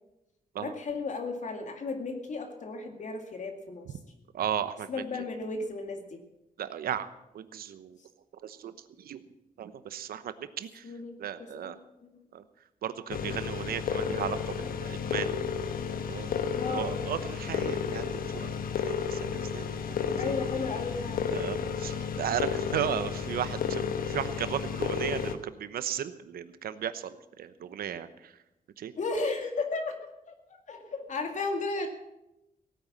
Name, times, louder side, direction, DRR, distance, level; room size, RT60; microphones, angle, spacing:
voice 1, 0.6-4.0 4.9-6.2 10.8-12.2 16.5-16.9 19.9-21.3 29.0-30.0 30.3-31.9, left 3 dB, 55° left, 4 dB, 2.1 m, -35 dB
voice 2, 4.3-4.9 6.6-7.1 7.3-8.0 8.4-8.7 9.0-9.2 9.6-10.8 11.2-11.8 12.3-12.4 12.8-15.3 16.1-16.4 16.7-18.1 18.3-18.5 18.8-20.3 21.3-28.3 28.8-28.9, right 9 dB, 90° right, 13 dB, 1.0 m, -35 dB
sound 1, 13.1-25.3, left 6 dB, 75° left, 1.2 m, -32 dB
17.0 x 9.5 x 7.4 m, 0.92 s
cardioid pair, 110°, 15 cm